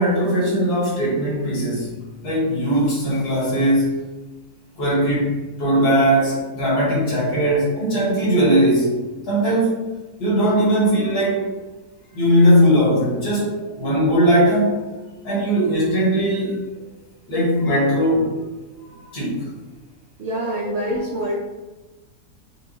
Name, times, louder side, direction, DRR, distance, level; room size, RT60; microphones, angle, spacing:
voice 1, 0.0-1.9 2.2-4.0 4.8-9.0 9.3-9.9 10.2-11.5 12.1-14.8 15.2-16.6 17.3-18.4 18.9-19.5 20.6-20.9, equal, 75° left, -6 dB, 2.0 m, -19 dB
voice 2, 20.2-21.3, right 1 dB, 75° right, -1 dB, 0.6 m, -25 dB
5.2 x 2.3 x 2.9 m, 1.2 s
omnidirectional pair, 1.7 m